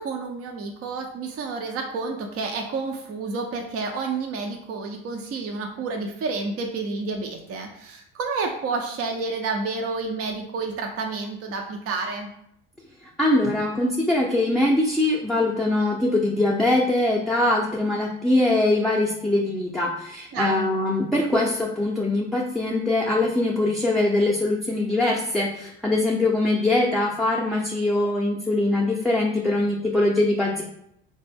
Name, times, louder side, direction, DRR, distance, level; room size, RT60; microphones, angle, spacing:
voice 1, 0.0-12.3 20.3-20.7, right 4 dB, 45° right, 2 dB, 0.6 m, -30 dB
voice 2, 13.2-30.6, left 2 dB, ahead, -2 dB, 0.6 m, -22 dB
3.8 x 2.2 x 3.4 m, 0.76 s
hypercardioid pair, 70°, 34 cm